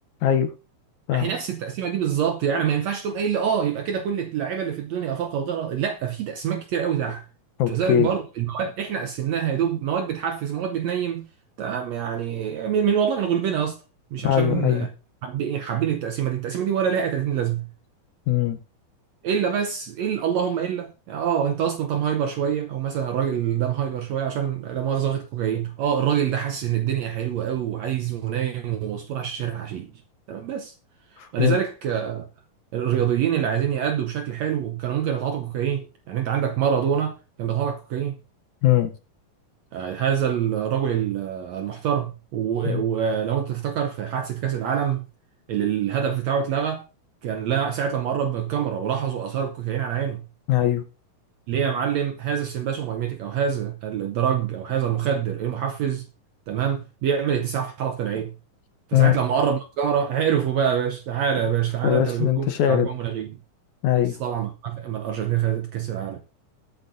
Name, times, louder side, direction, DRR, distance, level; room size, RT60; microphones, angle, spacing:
voice 1, 1.1-7.2 7.7-11.3 11.6-13.8 14.1-14.9 15.2-17.7 19.2-29.9 30.3-30.7 31.1-32.3 32.7-38.2 39.7-45.1 45.5-46.8 47.2-50.2 51.5-56.1 56.5-58.3 58.9-63.4 64.2-66.2, right 8 dB, 75° right, 1.6 m, -25 dB
voice 2, 7.6-8.1 14.2-14.9 18.3-18.6 31.2-31.6 38.6-38.9 42.6-42.8 50.5-50.8 58.9-59.2 61.8-62.9 63.8-64.2, left 11 dB, 75° left, 1.9 m, -21 dB
21.5 x 7.8 x 2.6 m
omnidirectional pair, 4.0 m